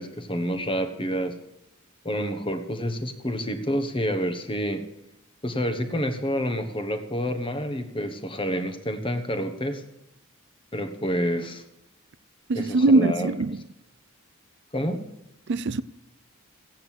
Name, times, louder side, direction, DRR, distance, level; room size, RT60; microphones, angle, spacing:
voice 1, 0.0-1.3 2.0-4.8 5.4-9.8 10.7-11.6 12.5-13.3 14.7-15.0, equal, 25° left, 1.2 m, -28 dB
voice 2, 12.5-13.6 15.5-15.8, right 2 dB, 55° right, 0.5 m, -21 dB
15.5 x 9.1 x 7.5 m
head